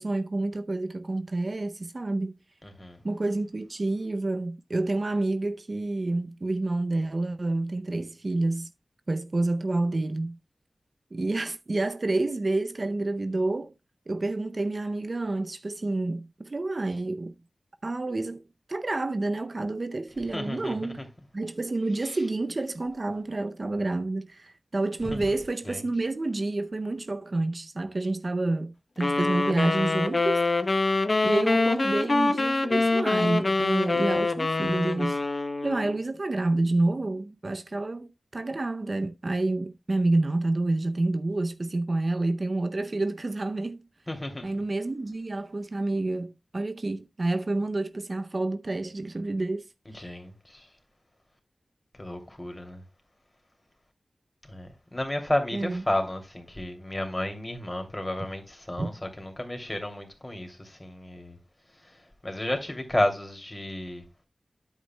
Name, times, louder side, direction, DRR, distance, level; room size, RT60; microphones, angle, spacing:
voice 1, 0.0-2.3 3.0-8.7 9.1-10.4 11.1-13.7 14.1-17.3 17.8-18.4 18.7-21.1 21.3-30.5 31.2-35.2 35.6-43.8 44.4-49.7 50.0-50.1 55.5-55.8 58.8-58.9, right 2 dB, 50° right, 0.5 m, -29 dB
voice 2, 2.6-3.0 20.3-21.0 22.0-22.2 25.0-25.2 25.7-25.8 44.1-44.5 49.9-50.7 52.0-52.8 54.5-61.4 61.8-62.0 62.2-64.0, left 1 dB, 20° left, 2.6 m, -32 dB
sound 1, 29.0-36.0, left 3 dB, 50° left, 0.7 m, -25 dB
9.7 x 8.1 x 2.2 m
wide cardioid pair, 55°, 0 cm